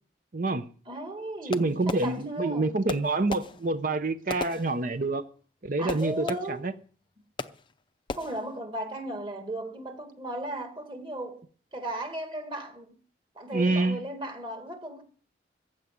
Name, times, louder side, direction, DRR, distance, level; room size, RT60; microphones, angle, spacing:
voice 1, 0.3-0.6 1.4-5.3 5.6-6.7 13.5-14.0, right 2 dB, 45° right, 0.6 m, -27 dB
voice 2, 0.9-2.7 5.8-6.7 8.2-11.4 11.7-13.0 13.4-15.0, right 1 dB, 25° right, 2.1 m, -36 dB
Fireworks, 1.5-2.5 2.9-5.3 5.9-6.8 7.4-7.8 8.1-8.6, left 3 dB, 25° left, 0.6 m, -38 dB
15.0 x 6.0 x 9.3 m
head